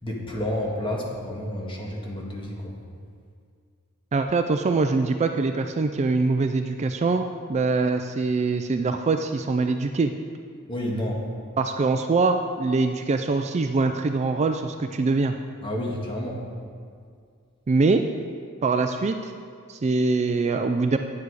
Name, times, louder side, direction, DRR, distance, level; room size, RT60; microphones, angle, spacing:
voice 1, 0.0-2.7 10.7-11.2 15.6-16.4, left 1 dB, 25° left, -2 dB, 1.6 m, -30 dB
voice 2, 4.1-10.1 11.6-15.4 17.7-18.0 18.6-19.3 19.7-21.0, right 3 dB, 30° right, 6 dB, 0.4 m, -23 dB
9.5 x 9.0 x 4.8 m, 2.2 s
head